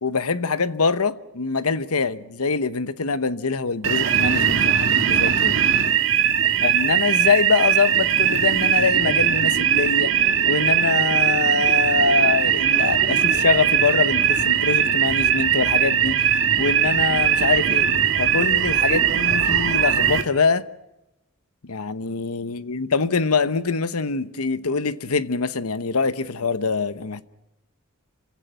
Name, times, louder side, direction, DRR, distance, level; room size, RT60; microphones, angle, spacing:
voice 1, 0.0-5.6 6.6-10.1 10.4-17.9 18.2-20.7 21.6-27.2, left 4 dB, 85° left, 1.0 m, -24 dB
sound 1, 3.8-20.2, right 8 dB, 60° right, 1.8 m, -20 dB
28.5 x 16.5 x 9.1 m
head